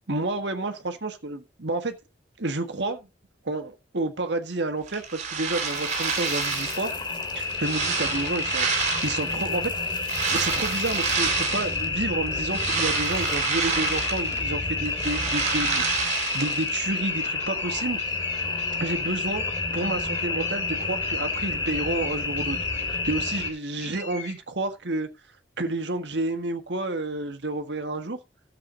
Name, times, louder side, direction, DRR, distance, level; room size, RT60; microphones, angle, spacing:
voice 1, 0.1-2.0 2.4-3.1 3.4-6.9 7.3-18.0 18.8-19.4 19.7-25.1 25.6-28.2, right 2 dB, 75° right, 1.6 m, -30 dB
sound 1, 4.9-6.9 7.3-9.4 10.0-11.9 12.3-14.5 14.8-16.7, right 5 dB, 40° right, 3.0 m, -28 dB
sound 2, 5.5-23.5, left 3 dB, 25° left, 2.4 m, -29 dB
sound 3, 12.0-24.4, left 3 dB, 45° left, 6.1 m, -42 dB
13.5 x 7.7 x 3.9 m
head